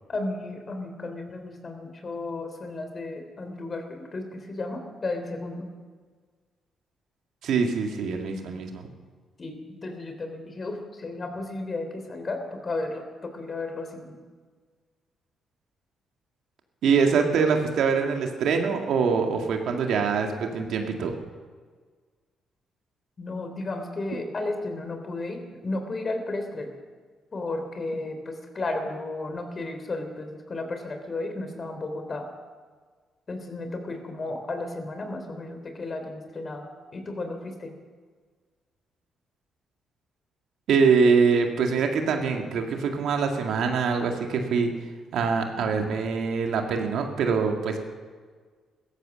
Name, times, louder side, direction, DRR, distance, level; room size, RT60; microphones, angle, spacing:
voice 1, 0.1-5.7 9.4-14.2 23.2-26.7 27.3-32.3 33.3-36.7 36.9-37.7, left 2 dB, 40° left, 6 dB, 3.5 m, -33 dB
voice 2, 7.4-8.9 16.8-21.1 40.7-44.7 45.1-47.8, right 5 dB, 75° right, 3 dB, 2.1 m, -24 dB
16.5 x 13.5 x 6.5 m, 1.5 s
supercardioid pair, 55°, 0 cm